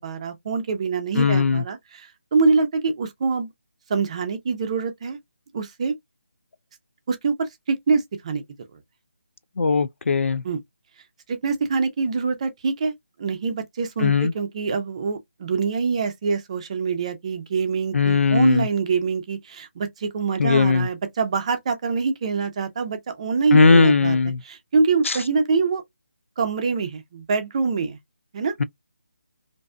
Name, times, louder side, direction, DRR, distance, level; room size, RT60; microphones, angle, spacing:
voice 1, 0.0-1.8 2.3-3.5 3.9-5.2 5.5-5.9 7.1-7.3 7.7-8.4 10.4-10.6 11.3-12.9 13.2-24.2 24.5-25.8 26.4-28.0 28.3-28.5, right 4 dB, 30° right, 0.5 m, -24 dB
voice 2, 1.1-1.6 9.6-10.4 14.0-14.3 17.9-18.7 20.4-20.9 23.5-24.4 25.0-25.2, left 4 dB, 80° left, 0.4 m, -18 dB
2.6 x 2.3 x 2.2 m
figure-of-eight pair, 165°, 7 cm